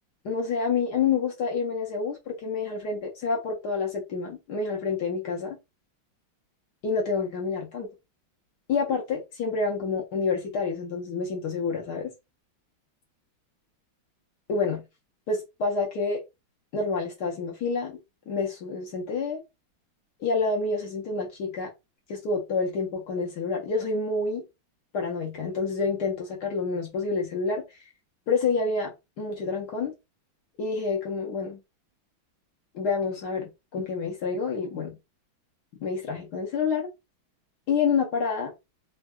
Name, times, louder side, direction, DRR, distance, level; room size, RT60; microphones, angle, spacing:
voice 1, 0.2-5.6 6.8-7.9 8.7-12.1 14.5-14.8 15.3-16.2 16.7-18.0 18.3-19.4 20.2-21.7 22.1-24.4 24.9-27.9 28.3-29.9 30.6-31.6 32.7-35.0 35.8-36.9 37.7-38.5, left 4 dB, 65° left, 1.1 m, -28 dB
3.6 x 2.2 x 2.2 m
omnidirectional pair, 2.2 m